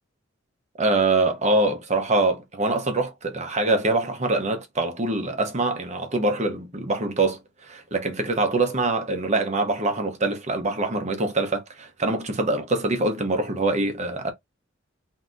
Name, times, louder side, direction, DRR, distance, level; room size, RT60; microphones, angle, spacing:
voice 1, 0.8-14.3, right 2 dB, 35° right, 0.9 m, -24 dB
3.6 x 2.8 x 2.4 m
head